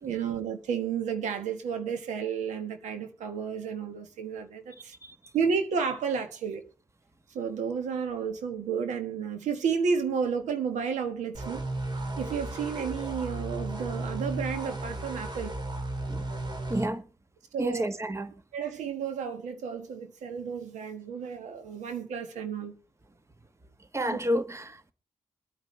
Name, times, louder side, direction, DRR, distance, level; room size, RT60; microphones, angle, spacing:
voice 1, 0.0-4.9 5.3-6.6 7.3-11.6 12.2-15.6 17.5-17.8 18.5-22.8, right 6 dB, 80° right, 1.5 m, -32 dB
sound 1, 11.3-16.9, right 2 dB, 40° right, 2.4 m, -34 dB
voice 2, 16.7-17.0 17.6-18.3 23.9-24.9, equal, 25° right, 1.4 m, -30 dB
23.0 x 9.2 x 3.3 m
supercardioid pair, 45°, 12 cm